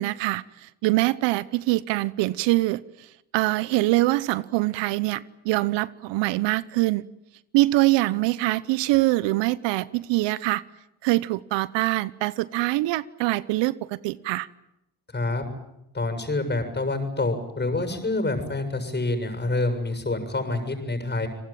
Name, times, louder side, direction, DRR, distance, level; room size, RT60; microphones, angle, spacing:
voice 1, 0.0-3.1 3.3-7.1 7.5-10.6 11.0-14.5, right 19 dB, 70° right, 0.9 m, -24 dB
voice 2, 15.1-15.4 15.9-21.3, left 2 dB, 25° left, 7.4 m, -27 dB
30.0 x 19.5 x 9.0 m
supercardioid pair, 70°, 45 cm